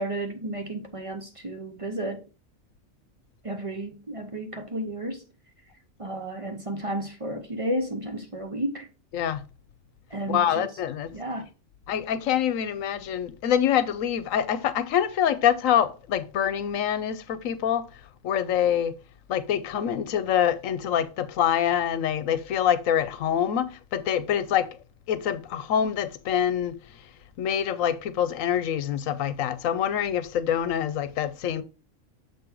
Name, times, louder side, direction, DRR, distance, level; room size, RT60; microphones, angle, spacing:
voice 1, 0.0-2.2 3.4-5.2 6.0-8.9 10.1-10.7 11.1-11.4, right 1 dB, 30° right, 0.9 m, -32 dB
voice 2, 9.1-9.4 10.3-11.1 11.9-17.8 18.2-18.9 19.3-24.8 25.1-26.8 27.4-31.6, left 9 dB, 85° left, 1.1 m, -25 dB
7.0 x 3.8 x 4.5 m
omnidirectional pair, 1.4 m